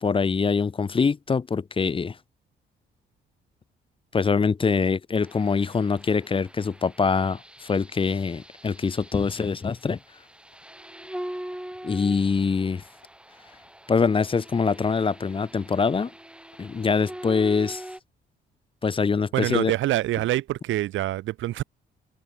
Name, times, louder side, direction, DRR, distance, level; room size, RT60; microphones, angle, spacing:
voice 1, 0.0-2.2 4.1-10.0 11.8-12.8 13.9-16.1 16.6-17.8 18.8-19.7, left 5 dB, 25° left, 0.7 m, -24 dB
sound 1, 5.2-18.0, right 1 dB, 5° right, 2.6 m, -43 dB
sound 2, 9.9-10.7 11.0-11.1 11.5-11.6 12.0-12.1 12.5-12.6 13.0-13.1 13.5-13.7 14.0-14.2 14.5-14.6 15.0-15.1 15.5-15.6 16.0-16.1 16.5-16.6, left 8 dB, 55° left, 5.2 m, -59 dB
voice 2, 19.3-21.6, right 15 dB, 75° right, 0.7 m, -25 dB
open air
cardioid pair, 90°, 20 cm